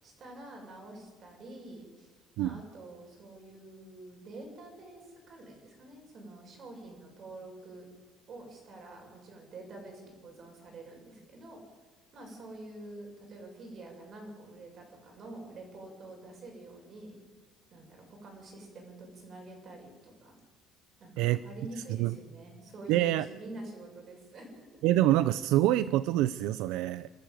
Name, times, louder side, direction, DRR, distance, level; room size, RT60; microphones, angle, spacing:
voice 1, 0.0-7.8 8.3-11.6 12.1-17.2 17.7-20.4 21.0-24.8, right 2 dB, 35° right, 2 dB, 6.3 m, -47 dB
voice 2, 22.9-23.3 24.8-27.1, right 14 dB, 75° right, 15 dB, 0.6 m, -26 dB
28.5 x 13.5 x 7.7 m, 1.3 s
cardioid pair, 165°, 0 cm